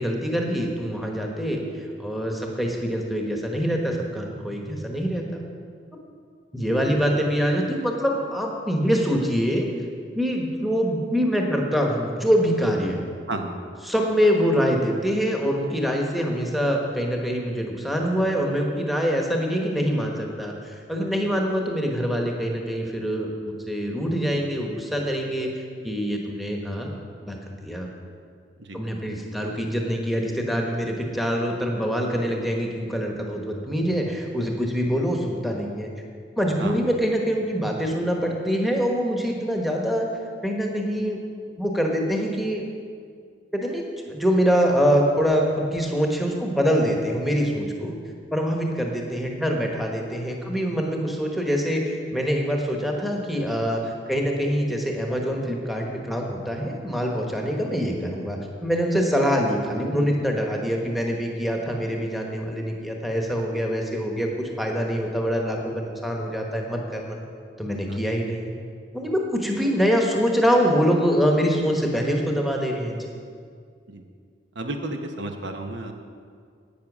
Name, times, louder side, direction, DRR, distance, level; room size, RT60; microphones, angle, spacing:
voice 1, 0.0-1.6 2.0-5.4 6.5-9.7 10.1-13.0 13.9-25.5 25.8-26.9 27.3-27.9 28.7-35.9 36.4-40.1 40.4-41.2 41.6-42.6 43.5-47.9 48.3-67.2 67.6-68.5 68.9-73.0, equal, ahead, 0 dB, 1.2 m, -24 dB
voice 2, 74.5-75.9, right 2 dB, 75° right, 4 dB, 1.0 m, -32 dB
10.5 x 8.8 x 6.1 m, 2.1 s
head